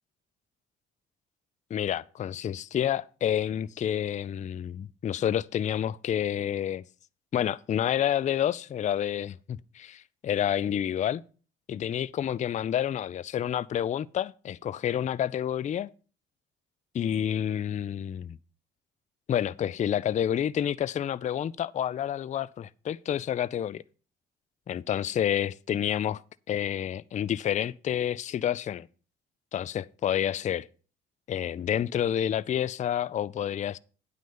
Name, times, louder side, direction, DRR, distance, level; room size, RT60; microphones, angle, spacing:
voice 1, 1.7-6.8 7.3-11.2 11.7-15.9 16.9-18.4 19.3-23.8 24.7-26.2 26.5-28.9 29.5-30.7 31.3-33.8, left 10 dB, 25° left, 0.4 m, -29 dB
9.1 x 5.6 x 6.7 m
hypercardioid pair, 50°, 29 cm